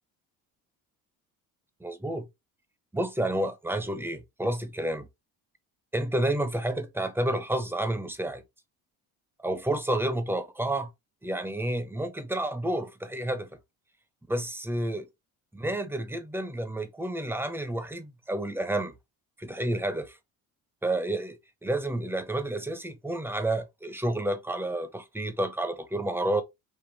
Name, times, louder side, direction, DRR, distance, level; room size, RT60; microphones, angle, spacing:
voice 1, 1.8-2.3 2.9-5.1 5.9-8.4 9.4-10.9 11.2-13.5 14.3-15.1 15.5-18.9 19.4-20.2 20.8-26.4, right 1 dB, 5° right, 1.0 m, -30 dB
5.3 x 2.8 x 2.9 m
cardioid pair, 105°, 37 cm